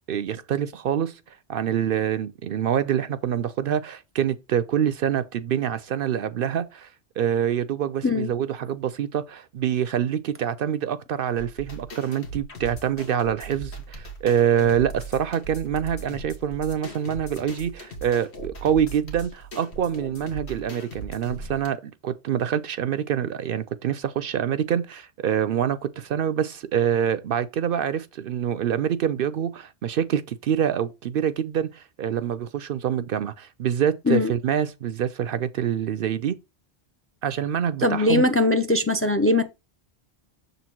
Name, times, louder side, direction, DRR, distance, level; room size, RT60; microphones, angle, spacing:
voice 1, 0.1-1.2 1.5-6.9 7.2-36.4 37.2-38.2, right 9 dB, 65° right, 0.7 m, -26 dB
sound 1, 11.4-21.7, right 2 dB, 85° left, 1.8 m, -39 dB
voice 2, 37.8-39.4, left 2 dB, 15° left, 0.5 m, -21 dB
6.7 x 4.0 x 4.4 m
omnidirectional pair, 1.1 m